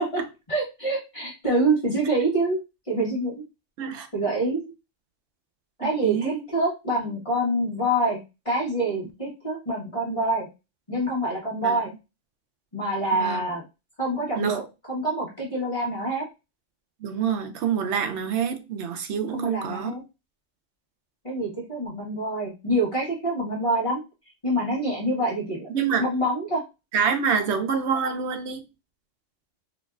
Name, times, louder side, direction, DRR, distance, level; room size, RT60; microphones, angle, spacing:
voice 1, 0.5-2.6 2.9-3.3 4.1-4.6 5.8-8.2 8.4-10.5 10.9-11.9 12.7-13.6 14.0-16.2 19.3-20.0 21.2-24.0 24.4-25.7 26.0-26.6, right 1 dB, 30° left, 1.0 m, -26 dB
voice 2, 5.8-6.4 11.6-11.8 13.1-13.4 14.4-14.6 17.0-19.9 25.7-26.1 26.9-28.6, right 7 dB, 70° right, 0.8 m, -26 dB
3.8 x 2.5 x 2.3 m
omnidirectional pair, 1.3 m